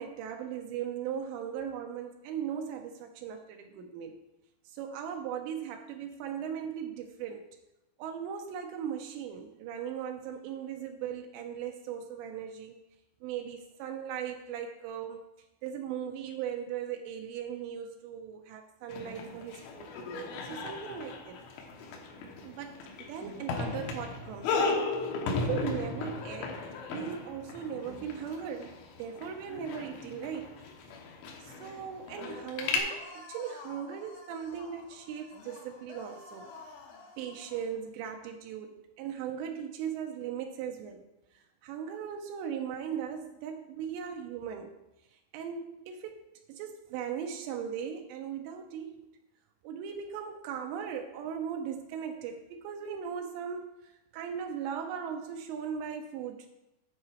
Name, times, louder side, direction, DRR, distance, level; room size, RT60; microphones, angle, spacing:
voice 1, 0.0-4.2 4.7-7.6 8.0-12.8 13.2-15.2 15.6-19.9 20.4-21.4 22.4-26.6 26.9-28.7 29.0-30.6 31.4-36.5 37.2-41.1 41.3-44.7 45.3-49.1 49.6-56.5, right 8 dB, 85° right, 4 dB, 2.8 m, -38 dB
sound 1, 18.9-32.8, left 3 dB, 90° left, 3.3 m, -36 dB
sound 2, 32.9-37.8, left 3 dB, 70° left, 2.8 m, -50 dB
9.0 x 5.7 x 4.3 m, 0.94 s
omnidirectional pair, 5.3 m